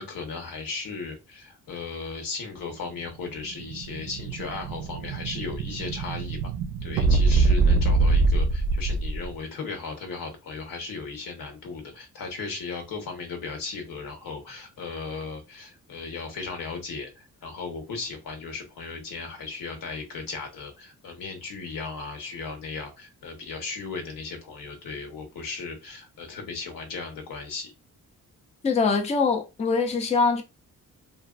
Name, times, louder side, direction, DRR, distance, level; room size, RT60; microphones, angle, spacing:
voice 1, 0.0-6.4 6.8-27.7, left 4 dB, 85° left, 1.1 m, -36 dB
Explosion, 3.2-9.3, right 3 dB, 85° right, 0.5 m, -24 dB
voice 2, 28.6-30.4, left 4 dB, 20° left, 0.4 m, -23 dB
3.0 x 2.5 x 2.4 m
wide cardioid pair, 140°, 33 cm